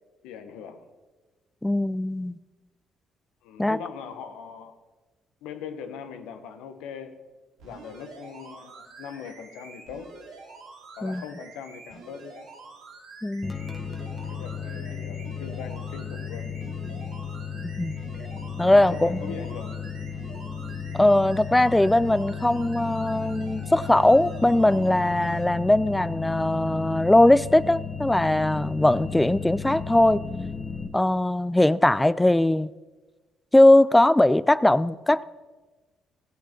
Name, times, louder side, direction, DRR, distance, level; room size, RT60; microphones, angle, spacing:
voice 1, 0.2-0.8 3.4-4.7 5.4-7.2 7.6-10.1 11.0-12.5 14.3-16.5 18.7-19.8, left 7 dB, 85° left, 1.0 m, -40 dB
voice 2, 1.6-2.4 3.6-3.8 11.0-11.2 13.2-13.6 17.8-17.9 18.6-19.4 20.9-30.2 30.9-32.7 33.5-35.2, left 1 dB, 10° left, 0.4 m, -20 dB
sound 1, 7.6-25.5 26.0-26.1, right 3 dB, 85° right, 2.3 m, -47 dB
sound 2, 13.4-30.9, left 6 dB, 30° left, 1.1 m, -34 dB
16.0 x 8.2 x 4.5 m
supercardioid pair, 60°, 0 cm